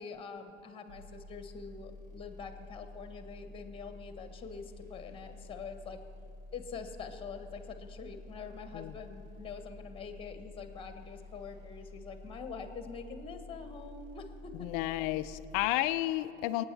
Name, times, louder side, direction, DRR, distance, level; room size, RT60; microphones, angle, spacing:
voice 1, 0.0-6.0 6.5-14.7, left 5 dB, 15° left, 8 dB, 1.2 m, -45 dB
sound 1, 0.9-15.6, left 2 dB, 85° right, 3.0 m, -50 dB
voice 2, 14.6-16.6, left 16 dB, 30° left, 13 dB, 0.4 m, -32 dB
25.0 x 8.8 x 3.4 m, 2.6 s
hypercardioid pair, 100°, 42 cm